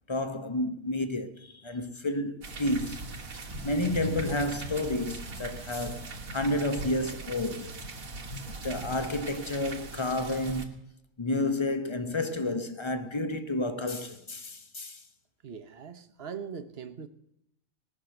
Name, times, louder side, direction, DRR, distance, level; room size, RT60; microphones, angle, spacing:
voice 1, 0.1-3.1 3.6-7.7 8.6-10.7 11.2-15.0, left 1 dB, 25° left, 0.7 m, -31 dB
sound 1, 2.4-10.7, right 2 dB, 80° right, 1.9 m, -39 dB
voice 2, 15.4-17.1, right 6 dB, 50° right, 1.0 m, -41 dB
19.0 x 6.5 x 7.8 m
omnidirectional pair, 1.4 m